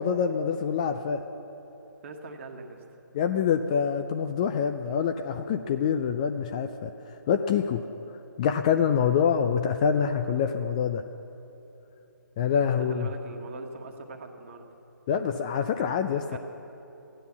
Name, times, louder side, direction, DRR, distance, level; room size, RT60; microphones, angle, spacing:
voice 1, 0.0-1.2 3.1-6.9 7.3-7.8 8.4-11.0 12.4-13.1 15.1-16.4, left 7 dB, 20° left, 7 dB, 0.4 m, -26 dB
voice 2, 2.0-2.8 12.6-14.7 16.3-16.4, right 3 dB, 40° right, 4 dB, 1.4 m, -41 dB
15.0 x 9.8 x 7.1 m, 3.0 s
figure-of-eight pair, 145°, 11 cm